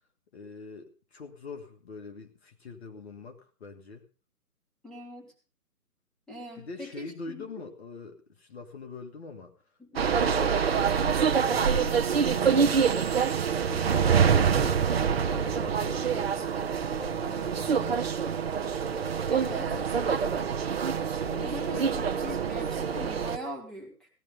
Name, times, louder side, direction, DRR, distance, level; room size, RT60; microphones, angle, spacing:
voice 1, 0.3-4.1 6.6-9.5 10.0-12.7 13.8-16.5 16.9-18.5 19.0-20.6 21.2-21.6 21.9-22.0, left 4 dB, 40° left, 5 dB, 1.9 m, -43 dB
voice 2, 4.8-5.3 6.3-7.4 9.8-10.1 19.3-19.7 21.4-24.1, equal, ahead, -2 dB, 3.2 m, -41 dB
sound 1, 10.0-23.4, right 6 dB, 40° right, 1.0 m, -26 dB
Tribute-Cannon, 13.7-15.4, left 2 dB, 75° left, 3.4 m, -44 dB
17.0 x 11.0 x 5.2 m, 0.37 s
figure-of-eight pair, 150°, 47 cm